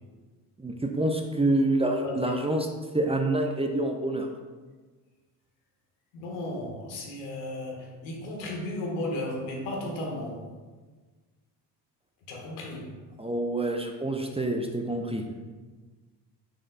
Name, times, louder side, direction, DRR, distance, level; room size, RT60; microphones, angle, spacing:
voice 1, 0.6-2.7 2.9-4.3 13.2-15.3, right 1 dB, 10° right, 3 dB, 0.7 m, -27 dB
voice 2, 6.1-10.5 12.3-13.0, left 1 dB, 80° left, -1 dB, 1.5 m, -34 dB
7.3 x 6.5 x 2.3 m, 1.3 s
hypercardioid pair, 50°, 50 cm